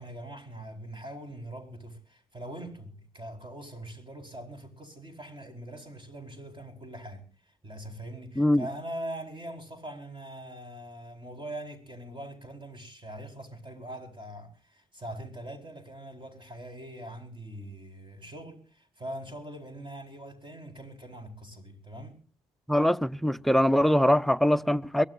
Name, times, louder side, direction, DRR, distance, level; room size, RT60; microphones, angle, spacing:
voice 1, 0.0-22.2, right 1 dB, 30° right, 4.8 m, -42 dB
voice 2, 22.7-25.1, equal, ahead, 0.7 m, -23 dB
23.0 x 17.0 x 2.7 m
hypercardioid pair, 45°, 17 cm